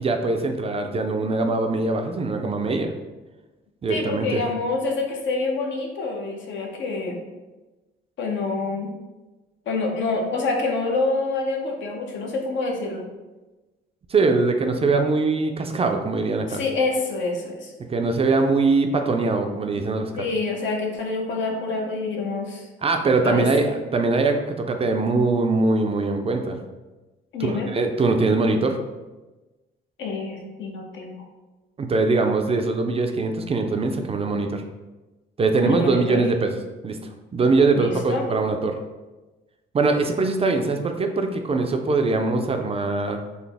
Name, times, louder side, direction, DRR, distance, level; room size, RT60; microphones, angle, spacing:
voice 1, 0.0-2.9 3.8-4.4 14.1-16.6 17.9-20.2 22.8-26.6 27.4-28.8 31.8-34.6 35.4-37.0 37.3-38.8 39.7-43.2, right 3 dB, 30° right, 5 dB, 0.3 m, -22 dB
voice 2, 3.9-7.2 8.2-8.9 9.7-13.1 16.5-17.7 20.2-22.7 23.2-23.5 27.3-27.7 30.0-31.2 35.6-36.2 37.7-38.2, left 3 dB, 70° left, 1 dB, 0.7 m, -27 dB
3.9 x 2.0 x 3.4 m, 1.2 s
cardioid pair, 90°, 20 cm